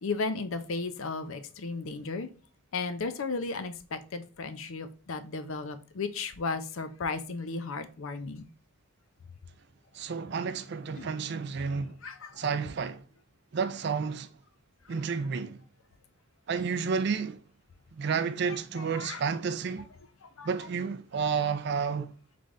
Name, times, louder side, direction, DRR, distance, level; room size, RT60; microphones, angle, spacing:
voice 1, 0.0-2.3 2.7-8.5 11.0-11.1 12.0-12.4 18.5-19.2 20.2-20.5, left 4 dB, 65° left, 0.5 m, -35 dB
voice 2, 9.9-11.9 12.3-13.0 13.5-14.3 14.9-15.6 16.5-17.4 17.9-19.8 20.4-22.1, right 5 dB, 50° right, 0.4 m, -31 dB
3.7 x 3.4 x 3.7 m
head